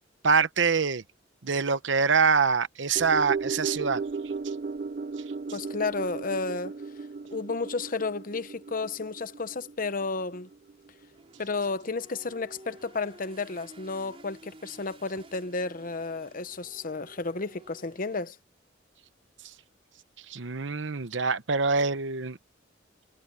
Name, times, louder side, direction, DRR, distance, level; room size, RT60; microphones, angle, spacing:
voice 1, 0.2-1.0 1.4-4.0 20.3-22.4, right 5 dB, 70° right, 0.9 m, -25 dB
sound 1, 3.0-11.4 11.7-11.8, right 4 dB, 45° right, 0.4 m, -36 dB
voice 2, 5.5-6.8 7.3-10.5 11.4-18.4, left 3 dB, 45° left, 1.0 m, -32 dB
sound 2, 11.1-18.2, right 1 dB, 30° right, 4.3 m, -52 dB
head